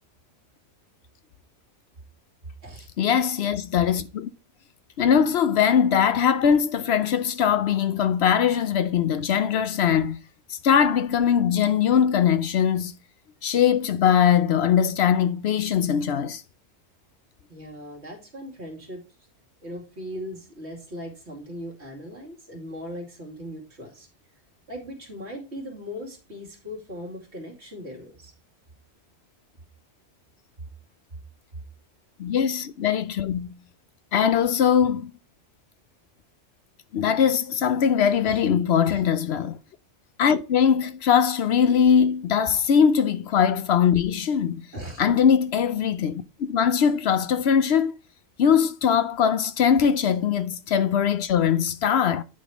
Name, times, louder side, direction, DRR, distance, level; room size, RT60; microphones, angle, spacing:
voice 1, 3.0-4.3 5.0-10.2 10.5-13.0 13.4-16.4 32.2-33.6 34.1-35.1 36.9-39.6 40.2-44.7 45.0-47.9 48.4-52.2, left 8 dB, 70° left, 0.9 m, -21 dB
voice 2, 17.5-19.0 19.6-24.1 24.7-28.3 38.3-38.4 38.8-39.0 44.7-45.0, equal, 70° right, 2.7 m, -38 dB
9.9 x 4.2 x 4.7 m
omnidirectional pair, 1.2 m